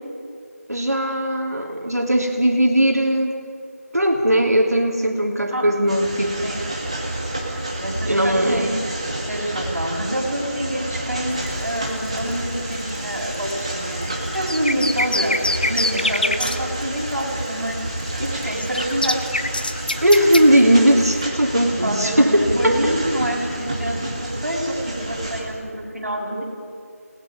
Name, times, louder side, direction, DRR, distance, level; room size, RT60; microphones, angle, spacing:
voice 1, 0.7-3.3 3.9-6.4 8.1-8.7 20.0-22.9, right 1 dB, 80° right, 2 dB, 3.3 m, -18 dB
sound 1, 5.9-25.4, right 1 dB, 25° right, 2.1 m, -30 dB
voice 2, 7.8-8.9 9.3-17.8 18.2-19.5 21.8-26.4, right 1 dB, 65° right, -3 dB, 7.4 m, -27 dB
sound 2, 11.3-21.2, left 2 dB, 35° left, 0.9 m, -28 dB
29.5 x 19.5 x 5.5 m, 2.4 s
figure-of-eight pair, 175°, 8 cm